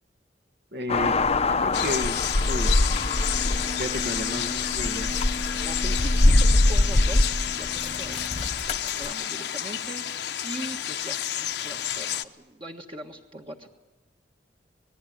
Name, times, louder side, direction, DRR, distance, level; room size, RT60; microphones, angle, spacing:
voice 1, 0.7-1.2 1.6-2.2 2.5-2.8 3.4-5.1, left 1 dB, 65° right, 4 dB, 2.1 m, -32 dB
sound 1, 0.9-9.1, left 2 dB, 35° left, 0.8 m, -24 dB
sound 2, 1.7-12.2, left 10 dB, 70° left, 1.0 m, -30 dB
voice 2, 5.6-8.2 8.7-10.0 10.4-13.7, right 1 dB, 30° right, 1 dB, 1.6 m, -40 dB
26.5 x 20.0 x 9.5 m, 1.1 s
head